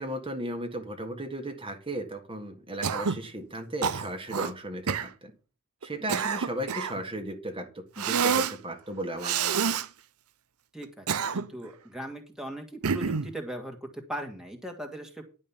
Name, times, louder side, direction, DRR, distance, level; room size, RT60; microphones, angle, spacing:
voice 1, 0.0-5.3 5.8-9.8, right 1 dB, 25° right, 4 dB, 1.6 m, -36 dB
Cough, 2.8-3.3 3.8-4.5 4.9-5.1 5.8-7.0 8.0-8.6 9.2-9.9 10.8-11.7 12.8-13.3, right 6 dB, 75° right, 0.7 m, -28 dB
voice 2, 10.7-15.2, right 1 dB, 5° right, 3 dB, 1.8 m, -39 dB
11.0 x 5.3 x 7.2 m, 0.34 s
head